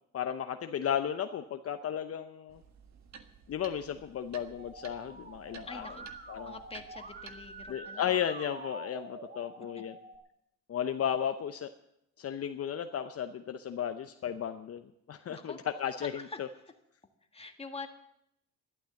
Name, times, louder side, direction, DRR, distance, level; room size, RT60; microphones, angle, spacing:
voice 1, 0.1-2.6 3.5-6.0 6.3-6.6 7.7-10.0 10.7-11.7 12.2-16.5, left 9 dB, 50° left, 8 dB, 0.8 m, -34 dB
sound 1, 2.5-7.8, right 6 dB, 65° right, 1.5 m, -54 dB
Musical instrument, 4.6-10.2, right 2 dB, 35° right, 2.0 m, -47 dB
voice 2, 5.7-6.1 6.4-8.1 9.8-9.9 15.3-15.6 16.2-16.4 17.3-17.9, left 3 dB, 20° left, 5 dB, 1.7 m, -45 dB
12.5 x 12.0 x 7.1 m, 0.79 s
cardioid pair, 90°, 30 cm